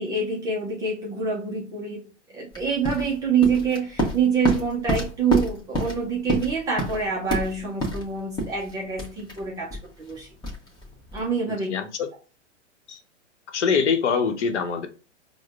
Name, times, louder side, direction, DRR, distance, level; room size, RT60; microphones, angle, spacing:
voice 1, 0.0-2.1 2.3-10.3 11.1-11.7, right 5 dB, 10° right, -3 dB, 0.3 m, -26 dB
sound 1, 2.5-11.3, equal, 10° left, 0.9 m, -29 dB
voice 2, 11.7-12.1 12.9-13.0 13.5-14.9, left 6 dB, 70° left, 7 dB, 0.8 m, -23 dB
4.8 x 2.1 x 2.3 m, 0.34 s
hypercardioid pair, 125°, 36 cm